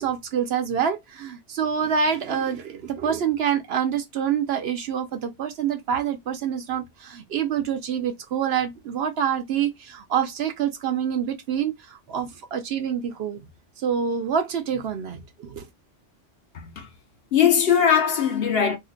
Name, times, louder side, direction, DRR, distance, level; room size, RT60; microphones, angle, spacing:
voice 1, 0.0-13.4 13.8-15.6, right 8 dB, 65° right, 0.8 m, -26 dB
voice 2, 16.5-16.9 17.3-18.8, left 8 dB, 60° left, 0.7 m, -20 dB
2.8 x 2.1 x 3.7 m
omnidirectional pair, 1.2 m